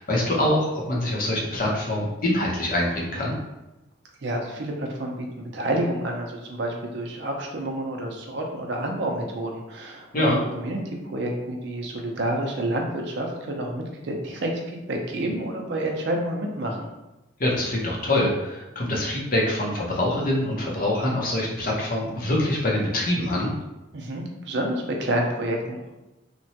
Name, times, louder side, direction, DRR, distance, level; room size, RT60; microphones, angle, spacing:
voice 1, 0.0-3.4 10.1-10.4 17.4-23.5, left 1 dB, 45° left, -3 dB, 0.7 m, -24 dB
voice 2, 4.2-16.9 23.9-25.9, right 1 dB, 60° right, 1 dB, 0.5 m, -29 dB
2.9 x 2.2 x 2.8 m, 0.99 s
head